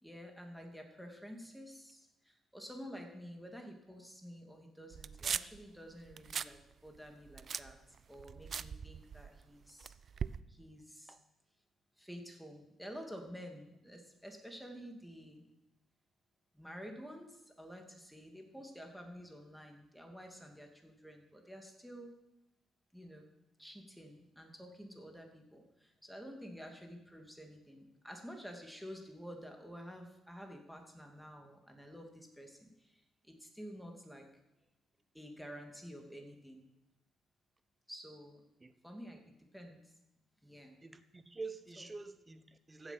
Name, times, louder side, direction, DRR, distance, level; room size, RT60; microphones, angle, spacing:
voice 1, 0.0-7.8 8.1-9.9 10.5-11.2 12.0-15.4 16.5-22.1 22.9-23.3 23.6-34.3 35.1-36.6 37.9-38.4 38.8-39.9 40.4-40.8 41.8-41.9, equal, ahead, 3 dB, 2.4 m, -50 dB
sound 1, 4.9-5.6 6.1-6.6 6.9-9.4 9.8-10.4, right 7 dB, 50° right, 0.4 m, -40 dB
voice 2, 40.8-42.9, right 3 dB, 20° right, 11 dB, 1.1 m, -47 dB
15.0 x 7.5 x 5.9 m, 0.91 s
cardioid pair, 90°, 0 cm